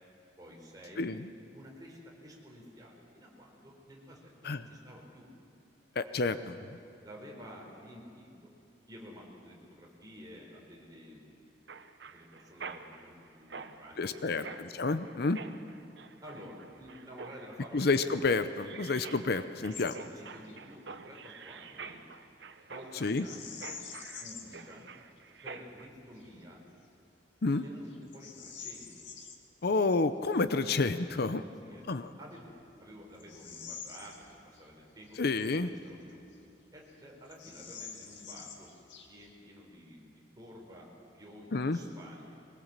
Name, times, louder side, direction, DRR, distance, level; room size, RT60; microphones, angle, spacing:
voice 1, 0.4-1.1 1.5-5.3 7.0-8.5 8.9-11.3 12.0-14.5 16.2-18.1 19.1-19.2 19.9-22.1 22.6-23.8 24.2-24.9 25.4-26.6 27.6-29.1 31.6-31.9 32.2-32.5 32.8-36.2 36.7-38.7 39.1-42.4, equal, 20° right, -2 dB, 4.5 m, -51 dB
voice 2, 6.0-6.6 14.0-14.4 14.8-15.4 17.7-19.9 23.0-23.3 27.4-27.6 29.6-31.4 31.9-32.1 35.2-35.7 41.5-41.8, left 3 dB, 60° left, 11 dB, 0.7 m, -29 dB
Mechanisms, 11.7-25.9, right 5 dB, 70° right, 1.0 m, -48 dB
Bird vocalization bird call bird song, 19.7-20.0 20.3-20.6 23.1-24.6 25.2-25.3 25.9-26.3 26.8-27.0 27.5-29.4 31.5-31.6 32.3-34.7 35.0-35.1 35.8-36.6 36.9-37.0 37.3-39.4, left 6 dB, 85° left, 2.1 m, -47 dB
22.5 x 20.5 x 7.5 m, 2.7 s
head